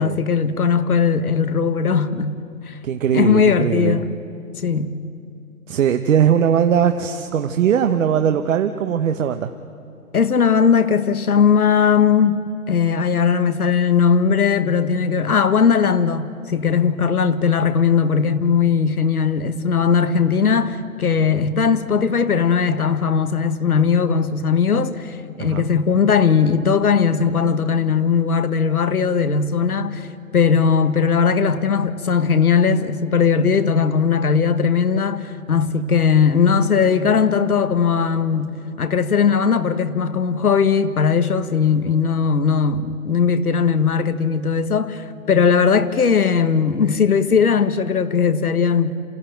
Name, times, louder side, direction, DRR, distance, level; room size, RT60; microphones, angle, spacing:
voice 1, 0.0-2.4 2.7-2.8 3.1-4.1 4.6-4.9 10.1-30.1 30.3-48.9, left 6 dB, 85° left, 1.4 m, -18 dB
voice 2, 2.8-4.0 5.7-9.5 25.4-25.7, right 8 dB, 60° right, 1.1 m, -19 dB
27.5 x 15.0 x 9.1 m
hypercardioid pair, 125°, 43 cm